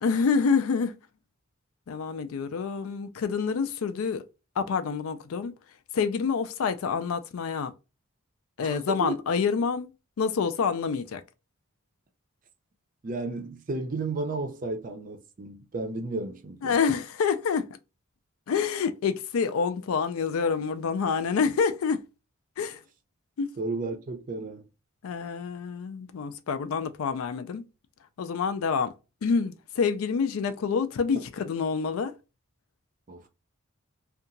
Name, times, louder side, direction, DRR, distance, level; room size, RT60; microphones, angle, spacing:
voice 1, 0.0-1.0 1.9-4.3 4.6-5.5 5.9-7.7 8.6-9.9 10.2-11.2 16.6-17.7 18.5-22.0 22.6-22.8 23.4-23.6 25.0-27.7 28.2-28.9 29.2-32.1, left 5 dB, 80° left, 0.4 m, -27 dB
voice 2, 8.6-9.1 13.0-16.8 23.6-24.7 33.1-33.3, right 3 dB, 40° right, 0.4 m, -33 dB
2.8 x 2.3 x 2.5 m
head